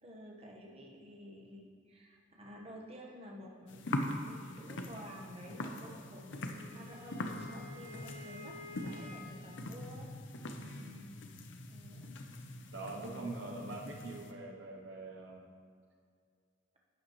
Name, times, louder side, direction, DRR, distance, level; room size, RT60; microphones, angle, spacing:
voice 1, 0.0-10.1 11.7-12.2 12.8-13.8, equal, 30° right, -2 dB, 1.3 m, -51 dB
sound 1, 3.7-14.3, left 1 dB, 75° left, 0.7 m, -43 dB
Wind instrument woodwind instrument, 6.4-9.6, left 3 dB, 40° left, 2.7 m, -51 dB
voice 2, 10.6-11.2 12.7-15.5, right 2 dB, 70° right, 0 dB, 0.8 m, -44 dB
11.5 x 8.8 x 3.1 m, 2.2 s
head